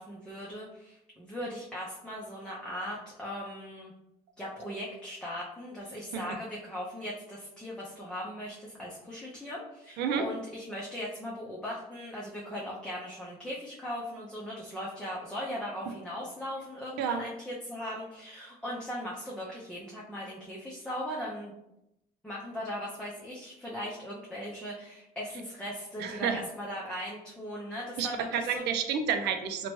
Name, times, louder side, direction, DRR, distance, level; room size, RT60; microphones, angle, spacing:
voice 1, 0.0-3.9 4.4-21.5 22.2-28.6, equal, 5° left, -5 dB, 0.5 m, -39 dB
voice 2, 10.0-10.3 17.0-17.2 26.0-26.4 28.0-29.7, right 7 dB, 80° right, 7 dB, 0.4 m, -30 dB
2.8 x 2.2 x 3.0 m, 0.85 s
cardioid pair, 110°, 17 cm